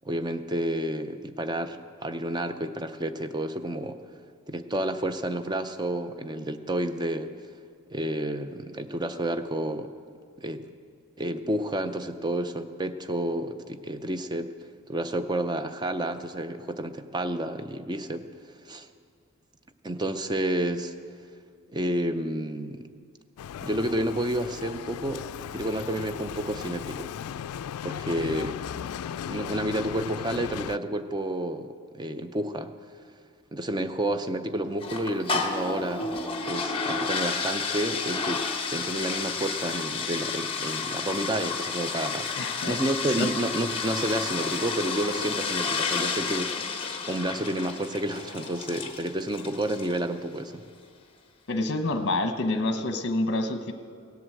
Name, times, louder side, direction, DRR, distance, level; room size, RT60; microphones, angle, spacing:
voice 1, 0.0-4.0 4.5-7.3 7.9-9.9 10.4-10.6 11.2-14.5 14.9-18.2 18.6-18.9 19.8-20.9 21.7-22.9 23.6-27.1 27.8-28.6 29.2-31.7 31.9-32.7 33.5-36.1 36.5-38.4 38.7-50.6, right 1 dB, 20° right, 9 dB, 0.5 m, -30 dB
Bicycle, 23.4-30.8, left 9 dB, 80° left, 0.3 m, -36 dB
sound 1, 34.8-50.1, left 4 dB, 25° left, 1.0 m, -31 dB
voice 2, 42.3-42.8 43.2-43.3 51.5-53.7, left 2 dB, 50° left, 8 dB, 0.9 m, -27 dB
17.0 x 7.8 x 7.7 m, 2.2 s
head